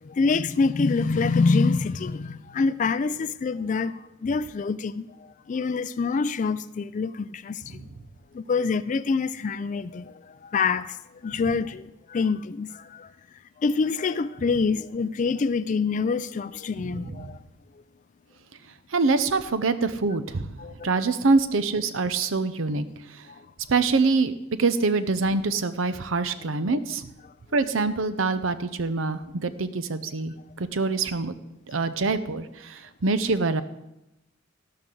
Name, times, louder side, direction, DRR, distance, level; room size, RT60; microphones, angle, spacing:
voice 1, 0.0-3.9 4.2-7.8 8.3-10.1 10.4-11.0 11.2-13.1 13.6-17.4 20.6-20.9 26.7-26.8, left 4 dB, 40° left, 0.3 m, -26 dB
voice 2, 16.8-17.3 18.9-20.6 20.8-23.2 23.7-24.3 24.6-27.1 27.5-31.3 31.7-33.6, right 3 dB, 85° right, 0.7 m, -25 dB
12.0 x 12.0 x 3.9 m
head